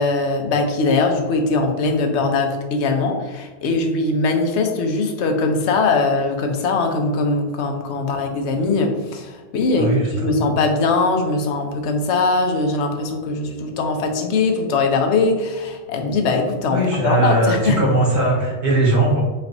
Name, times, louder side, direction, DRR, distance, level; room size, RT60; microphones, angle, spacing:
voice 1, 0.0-17.8, left 3 dB, 75° left, 4 dB, 0.9 m, -21 dB
voice 2, 9.8-10.5 16.7-19.2, right 2 dB, 45° right, -4 dB, 1.1 m, -19 dB
4.2 x 3.2 x 2.5 m, 1.3 s
omnidirectional pair, 1.2 m